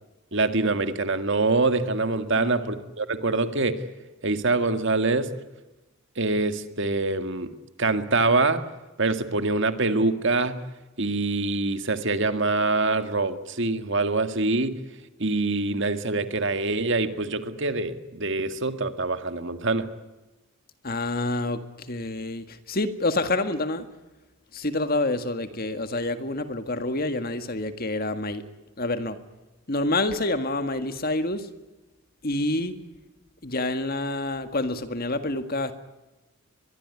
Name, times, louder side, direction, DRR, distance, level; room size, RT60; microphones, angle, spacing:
voice 1, 0.3-3.8 4.2-5.3 6.2-7.5 7.8-8.6 9.0-10.5 11.0-14.8 15.2-19.9, right 3 dB, 55° right, 9 dB, 1.9 m, -24 dB
voice 2, 2.3-2.7 20.8-23.9 24.5-28.4 28.8-29.2 29.7-31.5 32.2-32.8 33.4-35.7, left 2 dB, 40° left, 9 dB, 1.8 m, -27 dB
23.0 x 23.0 x 9.6 m, 1.1 s
head